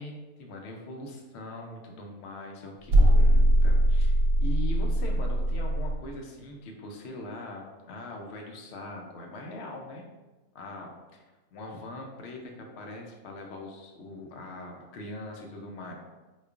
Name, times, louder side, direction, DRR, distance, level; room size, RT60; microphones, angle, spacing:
voice 1, 0.0-4.1 4.4-10.1 10.5-15.9, left 1 dB, 65° left, 1 dB, 0.7 m, -41 dB
sound 1, 2.9-6.0, right 1 dB, 90° right, 1.1 m, -21 dB
4.6 x 2.4 x 2.3 m, 1.2 s
omnidirectional pair, 1.5 m